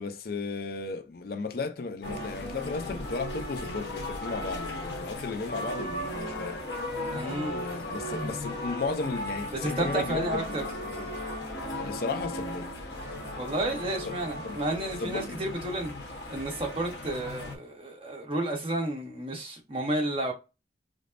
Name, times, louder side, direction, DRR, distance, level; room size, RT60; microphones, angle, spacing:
voice 1, 0.0-6.6 7.2-10.6 11.0-11.1 11.7-12.7 14.4-14.6 15.0-15.4, left 4 dB, 55° left, 0.5 m, -35 dB
sound 1, 2.0-17.6, left 1 dB, 80° left, 1.1 m, -36 dB
voice 2, 7.1-7.7 9.5-10.6 13.3-15.9 16.3-20.3, right 1 dB, 30° right, 1.2 m, -31 dB
5.1 x 2.0 x 2.5 m
head